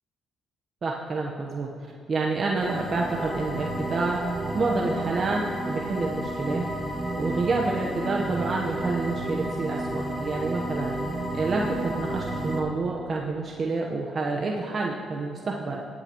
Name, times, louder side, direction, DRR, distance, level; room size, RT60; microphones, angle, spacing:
voice 1, 0.8-1.7 2.1-4.2 4.5-6.6 7.2-10.9 11.3-15.8, right 3 dB, 45° right, -1 dB, 0.9 m, -28 dB
sound 1, 2.6-12.6, right 1 dB, 15° right, 1.6 m, -31 dB
17.5 x 9.2 x 3.0 m, 2.5 s
cardioid pair, 90°, 0 cm